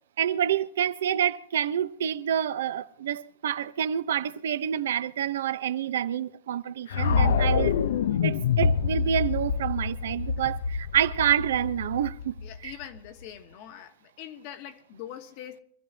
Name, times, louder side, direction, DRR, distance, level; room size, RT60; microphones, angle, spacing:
voice 1, 0.2-7.8 8.2-12.3 12.6-12.7, right 9 dB, 80° right, 0.9 m, -28 dB
sound 1, 6.9-13.0, left 6 dB, 80° left, 0.8 m, -26 dB
voice 2, 12.4-15.6, left 10 dB, 40° left, 1.4 m, -43 dB
25.5 x 14.5 x 2.9 m
supercardioid pair, 165°, 0 cm